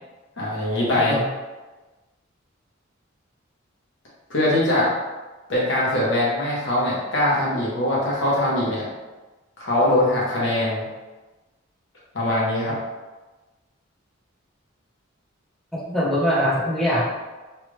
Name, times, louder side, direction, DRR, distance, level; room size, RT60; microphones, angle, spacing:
voice 1, 0.4-1.2 4.3-4.9 5.5-8.8 9.6-10.9 12.1-12.8, left 1 dB, 65° left, -6 dB, 1.1 m, -22 dB
voice 2, 1.0-1.3 15.7-17.0, equal, ahead, -9 dB, 1.0 m, -22 dB
3.2 x 2.4 x 3.2 m, 1.2 s
head